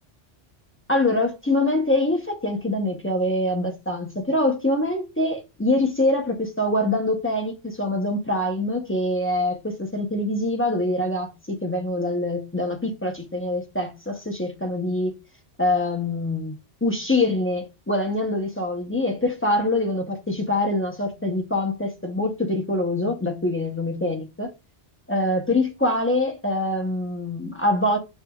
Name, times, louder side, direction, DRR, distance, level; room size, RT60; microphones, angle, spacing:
voice 1, 0.9-15.1 15.6-16.5 16.8-24.5 25.1-28.0, left 1 dB, 15° left, 0.5 m, -24 dB
6.4 x 3.3 x 2.3 m
omnidirectional pair, 1.2 m